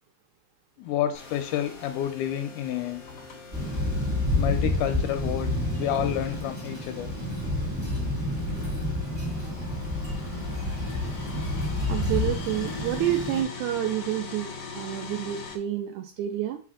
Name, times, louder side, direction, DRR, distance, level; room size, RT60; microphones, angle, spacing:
voice 1, 0.8-3.0 4.4-7.1, left 11 dB, 85° left, 8 dB, 2.2 m, -29 dB
sound 1, 0.8-15.6, left 5 dB, 60° left, 1.5 m, -44 dB
sound 2, 1.1-15.5, left 4 dB, 35° left, 1.5 m, -45 dB
Thunder, 3.5-13.4, left 1 dB, 5° right, 1.8 m, -29 dB
voice 2, 11.9-16.6, right 12 dB, 80° right, 5 dB, 1.9 m, -29 dB
6.6 x 4.3 x 3.7 m, 0.40 s
omnidirectional pair, 3.7 m